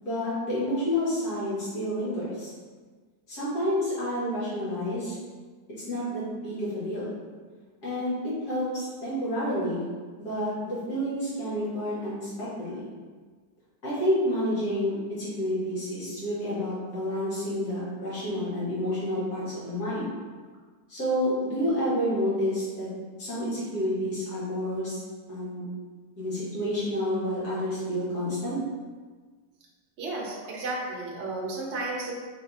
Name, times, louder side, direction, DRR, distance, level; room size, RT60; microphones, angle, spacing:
voice 1, 0.0-2.5 3.3-5.1 5.9-7.1 7.8-9.8 10.2-12.8 13.8-20.1 20.9-22.9 23.2-25.0 25.3-25.6 26.2-28.6, equal, 70° left, -10 dB, 2.1 m, -29 dB
voice 2, 30.0-32.1, right 2 dB, 55° right, -2 dB, 0.9 m, -33 dB
3.9 x 3.6 x 2.6 m, 1.5 s
omnidirectional pair, 1.7 m